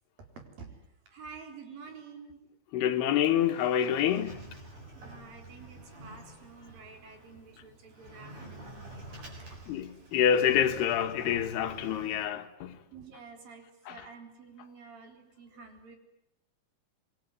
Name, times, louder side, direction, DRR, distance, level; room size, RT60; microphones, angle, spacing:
voice 1, 0.2-0.8 1.1-2.4 5.0-9.6 12.9-16.0, right 5 dB, 65° right, 5.8 m, -50 dB
voice 2, 2.7-4.4 9.7-12.8 13.9-14.0, left 9 dB, 90° left, 3.6 m, -27 dB
Sliding door, 2.8-12.3, right 1 dB, 40° right, 8.4 m, -49 dB
27.0 x 23.0 x 9.7 m
omnidirectional pair, 4.4 m